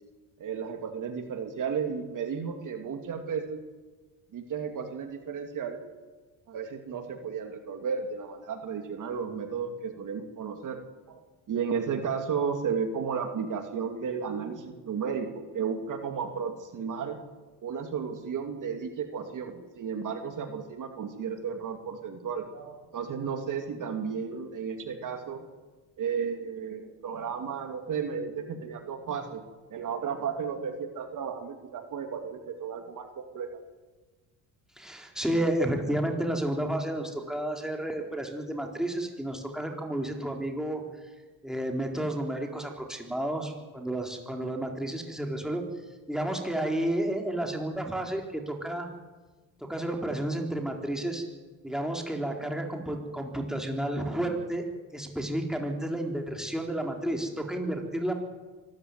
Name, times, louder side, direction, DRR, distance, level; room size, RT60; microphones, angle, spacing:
voice 1, 0.4-3.6 4.3-5.8 6.5-10.8 11.1-11.2 11.5-17.2 17.6-25.4 26.0-29.4 29.7-33.5, right 6 dB, 50° right, 5 dB, 2.6 m, -33 dB
voice 2, 34.8-40.8 41.4-45.6 46.1-48.9 49.6-51.2 51.6-54.7 54.9-58.1, right 1 dB, ahead, 2 dB, 4.1 m, -31 dB
24.5 x 14.5 x 9.5 m, 1.3 s
cardioid pair, 100°, 39 cm